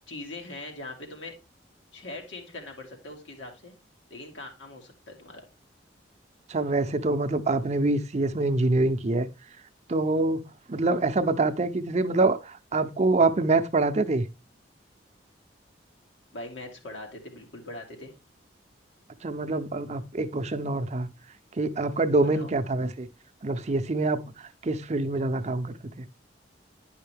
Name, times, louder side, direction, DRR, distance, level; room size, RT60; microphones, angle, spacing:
voice 1, 0.1-1.3 1.9-3.7 4.1-5.4 16.3-18.1 22.2-22.5, left 2 dB, 90° left, 2.3 m, -41 dB
voice 2, 6.5-9.3 9.9-14.3 19.2-21.1 21.6-23.1 23.4-24.3 24.6-26.1, right 2 dB, 35° right, 0.6 m, -25 dB
10.0 x 5.6 x 3.4 m
head